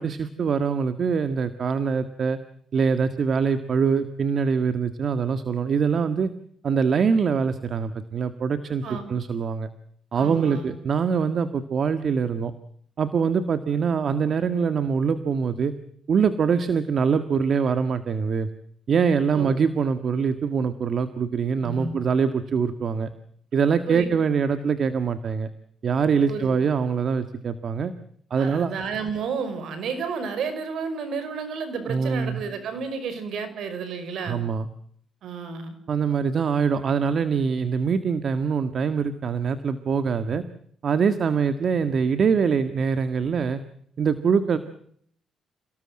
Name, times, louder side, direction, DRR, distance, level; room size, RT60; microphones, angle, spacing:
voice 1, 0.0-2.4 2.7-6.3 6.6-8.8 9.1-9.7 10.1-12.5 13.0-15.7 16.1-18.5 18.9-23.1 23.5-25.5 25.8-27.9 28.3-28.7 31.9-32.4 34.2-34.7 35.9-40.4 40.8-43.6 44.0-44.6, right 6 dB, 50° right, 10 dB, 1.7 m, -23 dB
voice 2, 8.8-9.1 10.1-10.7 19.3-19.5 21.6-21.9 23.9-24.1 26.3-26.5 28.4-34.4 35.2-35.8, right 5 dB, 70° right, 10 dB, 5.5 m, -31 dB
28.5 x 18.0 x 7.7 m, 0.65 s
cardioid pair, 90°, 0 cm